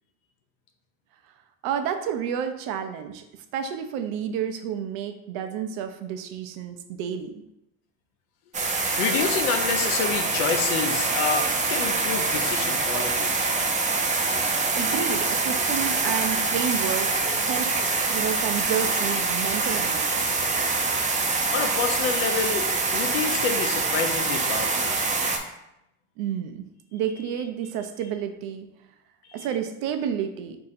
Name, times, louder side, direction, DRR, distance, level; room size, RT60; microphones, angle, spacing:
voice 1, 1.6-3.2 3.5-7.3 14.7-17.7 18.1-20.3 26.2-26.6 26.9-28.7 29.3-30.6, right 8 dB, 65° right, 7 dB, 0.6 m, -30 dB
sound 1, 8.5-25.4, right 3 dB, 20° right, 0.5 m, -25 dB
voice 2, 9.0-13.3 21.5-25.0, left 6 dB, 80° left, 5 dB, 0.7 m, -28 dB
3.7 x 2.8 x 4.1 m, 0.85 s
supercardioid pair, 110°, 39 cm